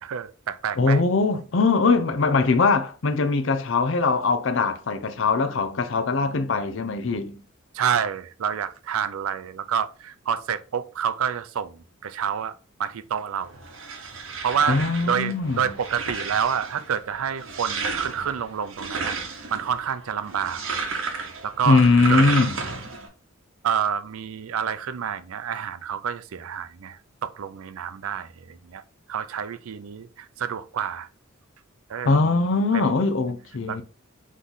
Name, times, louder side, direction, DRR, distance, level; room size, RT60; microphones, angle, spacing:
voice 1, 0.0-1.0 7.7-12.5 12.8-13.6 14.4-14.8 15.1-19.2 19.5-20.6 21.4-21.8 22.1-22.2 23.6-28.8 29.1-31.1 31.9-32.2 32.7-33.0 33.7-33.8, right 8 dB, 85° right, 0.4 m, -28 dB
voice 2, 0.8-7.4 14.7-15.7 21.7-22.5 32.0-33.8, left 3 dB, 60° left, 0.6 m, -21 dB
sound 1, 13.4-23.1, right 4 dB, 65° right, 0.9 m, -33 dB
4.0 x 3.1 x 3.7 m
head